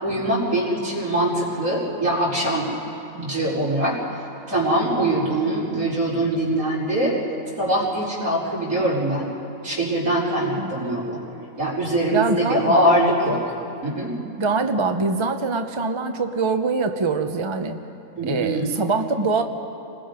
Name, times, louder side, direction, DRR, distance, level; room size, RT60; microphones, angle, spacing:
voice 1, 0.0-2.7 3.1-4.0 4.5-7.2 7.6-9.3 9.6-11.2 11.6-13.5 13.8-14.1 18.2-18.7, right 1 dB, 75° right, -6 dB, 4.9 m, -22 dB
voice 2, 12.1-13.0 14.4-17.8 18.3-19.4, right 4 dB, 25° right, 6 dB, 0.7 m, -23 dB
29.0 x 20.5 x 5.2 m, 2.7 s
omnidirectional pair, 1.5 m